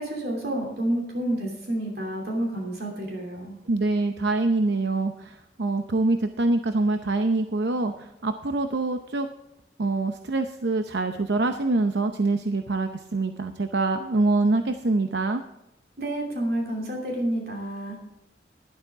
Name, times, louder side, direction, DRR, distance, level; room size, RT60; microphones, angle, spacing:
voice 1, 0.0-3.6 16.0-18.0, right 1 dB, 60° right, -1 dB, 2.8 m, -29 dB
voice 2, 3.7-9.3 9.8-15.4, right 2 dB, 80° right, 7 dB, 0.7 m, -25 dB
12.0 x 12.0 x 3.6 m, 0.91 s
head